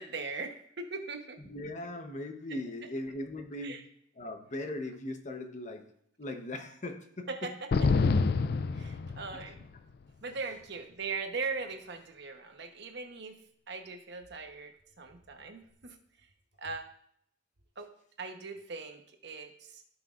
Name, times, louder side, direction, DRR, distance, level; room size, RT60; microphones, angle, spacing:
voice 1, 0.0-1.4 3.6-3.8 7.3-7.7 8.7-9.7 10.2-13.4 13.7-16.0 16.6-16.8 17.8-17.9 18.2-19.8, right 4 dB, 65° right, 5 dB, 1.1 m, -40 dB
voice 2, 1.4-3.8 4.2-5.8 6.2-7.5 9.3-9.5, left 1 dB, 40° left, 5 dB, 1.1 m, -39 dB
sound 1, 7.7-9.6, left 4 dB, 55° left, 0.4 m, -27 dB
16.0 x 6.2 x 2.5 m, 0.68 s
head